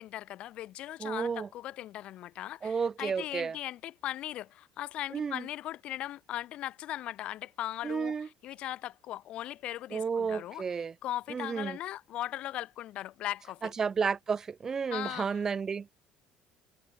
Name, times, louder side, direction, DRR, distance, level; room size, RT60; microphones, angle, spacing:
voice 1, 0.0-10.6 11.0-13.7 14.9-15.3, left 13 dB, 50° left, 1.1 m, -38 dB
voice 2, 1.0-1.5 2.6-3.6 5.1-5.4 7.8-8.3 9.9-10.9 11.3-11.8 13.6-16.0, right 6 dB, 20° right, 0.4 m, -32 dB
cardioid pair, 160°, 2 cm